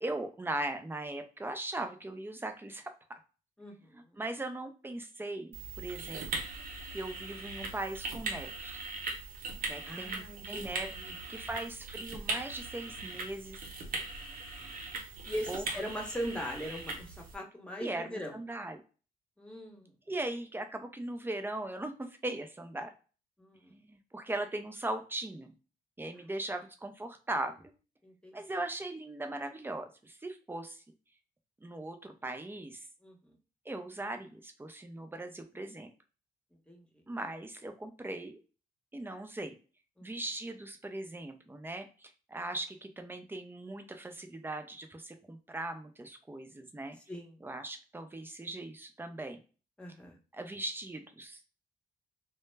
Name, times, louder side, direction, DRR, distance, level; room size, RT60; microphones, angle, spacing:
voice 1, 0.0-2.9 3.9-6.2 6.9-8.8 9.7-13.6 15.5-15.6 17.8-18.8 20.1-22.9 23.7-25.5 26.0-27.7 28.3-30.8 31.6-32.9 33.7-35.9 37.1-38.4 38.9-39.5 40.0-47.0 47.4-49.4 50.3-51.4, right 2 dB, 15° right, 6 dB, 0.5 m, -39 dB
voice 2, 3.6-4.1 9.9-11.2 15.3-18.4 19.4-19.9 23.4-23.7 26.1-26.2 28.0-28.4 33.0-33.3 36.7-36.9 40.0-40.1 47.1-47.4 49.8-50.2, equal, 5° left, 0 dB, 0.9 m, -40 dB
sound 1, 5.5-17.4, right 3 dB, 60° right, 0.9 m, -40 dB
2.1 x 2.0 x 3.3 m, 0.36 s
cardioid pair, 70°, 16 cm